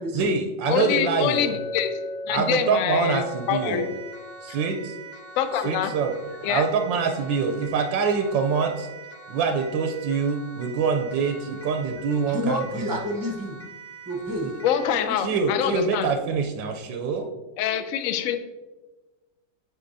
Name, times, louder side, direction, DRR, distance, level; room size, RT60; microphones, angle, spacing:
voice 1, 0.1-1.6 2.3-3.9 4.4-5.0 5.6-6.1 6.4-8.9 9.3-12.6 14.4-14.5 15.2-17.3, right 5 dB, 80° right, 5 dB, 1.3 m, -25 dB
voice 2, 0.7-2.0 2.2-3.9 5.4-5.9 6.4-6.6 14.6-16.1 17.6-18.4, left 9 dB, 85° left, 9 dB, 0.7 m, -25 dB
Chink clink, 1.3-5.8, left 2 dB, 70° left, 1.1 m, -38 dB
Siren, 3.1-15.1, right 4 dB, 5° left, 1.3 m, -44 dB
voice 3, 12.3-13.6 14.0-14.5 14.9-15.2 18.0-18.3, equal, 20° right, -2 dB, 0.6 m, -29 dB
8.5 x 4.7 x 2.6 m, 1.2 s
omnidirectional pair, 2.0 m